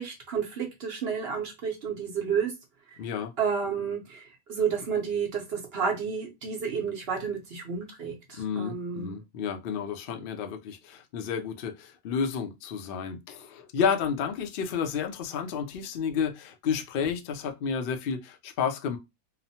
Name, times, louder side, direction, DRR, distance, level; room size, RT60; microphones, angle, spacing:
voice 1, 0.0-2.5 2.9-3.0 3.4-9.2, right 6 dB, 55° right, 0.8 m, -31 dB
voice 2, 3.0-3.4 8.4-19.0, left 6 dB, 65° left, 0.5 m, -31 dB
2.9 x 2.0 x 2.7 m
omnidirectional pair, 1.5 m